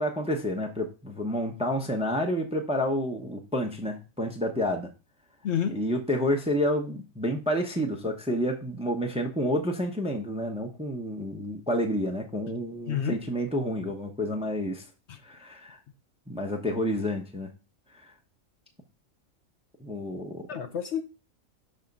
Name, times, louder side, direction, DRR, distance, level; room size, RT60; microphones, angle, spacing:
voice 1, 0.0-4.9 5.7-14.8 15.2-15.8 16.3-17.5 19.8-20.4, equal, 5° right, 0.7 m, -29 dB
voice 2, 5.4-5.8 12.9-13.2 20.5-21.0, left 8 dB, 60° left, 0.9 m, -29 dB
6.3 x 3.6 x 5.2 m
omnidirectional pair, 1.4 m